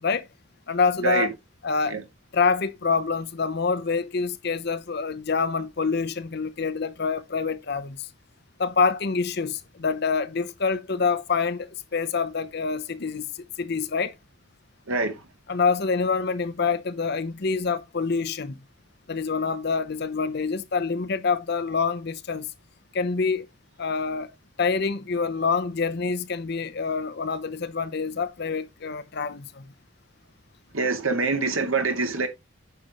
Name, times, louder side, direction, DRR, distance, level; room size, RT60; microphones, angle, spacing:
voice 1, 0.7-1.3 1.6-2.0 2.3-8.1 8.6-14.1 15.5-18.6 19.1-22.5 22.9-23.5 23.8-24.3 24.6-29.7, left 5 dB, 50° left, 0.7 m, -26 dB
voice 2, 30.7-32.3, right 3 dB, 85° right, 2.1 m, -25 dB
9.3 x 6.4 x 3.0 m
head